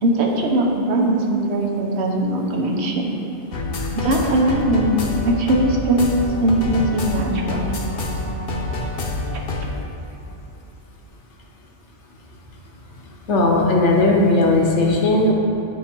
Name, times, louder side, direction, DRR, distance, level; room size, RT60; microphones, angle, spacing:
voice 1, 0.0-3.0 3.9-4.9 5.2-7.6 9.3-9.4, right 1 dB, 75° right, 0 dB, 1.1 m, -20 dB
sound 1, 3.5-9.7, left 2 dB, 60° left, 0.9 m, -26 dB
voice 2, 13.3-15.3, left 2 dB, 85° left, -1 dB, 1.2 m, -17 dB
9.6 x 3.7 x 4.4 m, 2.9 s
omnidirectional pair, 1.1 m